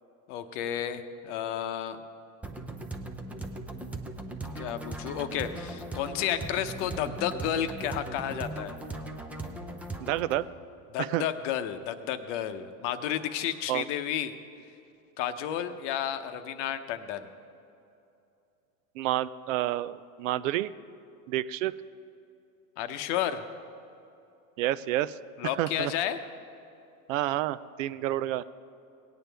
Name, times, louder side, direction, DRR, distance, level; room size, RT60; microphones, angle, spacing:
voice 1, 0.3-2.0 4.5-8.7 10.9-14.3 15.2-17.3 22.8-23.4 25.4-26.2, left 10 dB, 55° left, 9 dB, 0.9 m, -32 dB
sound 1, 2.4-10.4, right 2 dB, 5° right, 0.5 m, -39 dB
voice 2, 10.0-10.4 11.0-11.2 13.7-13.8 19.0-20.7 21.3-21.7 24.6-25.2 25.6-25.9 27.1-28.4, right 14 dB, 65° right, 16 dB, 0.5 m, -29 dB
18.0 x 9.1 x 3.4 m, 2.7 s
supercardioid pair, 120°, 42 cm